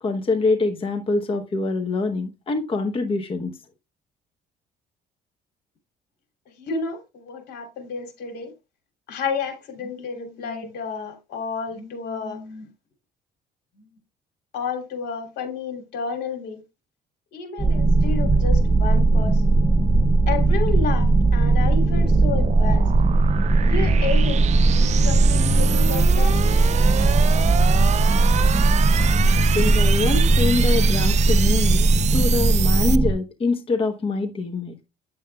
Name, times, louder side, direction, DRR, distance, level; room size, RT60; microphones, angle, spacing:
voice 1, 0.0-3.6 29.5-31.9 32.1-34.7, left 3 dB, 30° left, 1.0 m, -24 dB
voice 2, 6.5-8.5 9.1-12.7 13.8-13.9 14.5-16.6 17.3-19.6 20.3-22.9 23.6-26.4, left 5 dB, 75° left, 3.1 m, -31 dB
sound 1, 17.6-33.1, right 2 dB, 5° right, 1.0 m, -18 dB
sound 2, 20.7-33.0, right 10 dB, 45° right, 0.5 m, -29 dB
9.2 x 7.3 x 2.3 m
cardioid pair, 110°, 17 cm